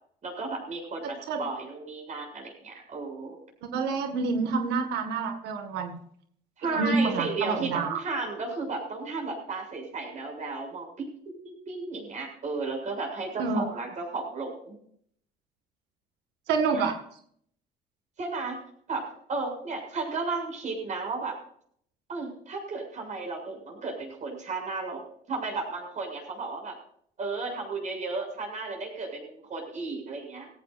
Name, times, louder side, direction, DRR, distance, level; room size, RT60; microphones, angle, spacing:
voice 1, 0.2-3.4 6.6-11.1 11.4-14.8 16.7-16.8 18.2-18.6 18.9-21.3 22.1-25.0 25.3-26.8 27.2-30.5, right 3 dB, 45° right, 2 dB, 7.4 m, -34 dB
voice 2, 3.6-6.0 6.7-8.0 13.4-13.7 16.5-16.9, right 4 dB, 90° right, 6 dB, 1.9 m, -27 dB
17.5 x 17.0 x 2.6 m, 0.62 s
cardioid pair, 110°, 17 cm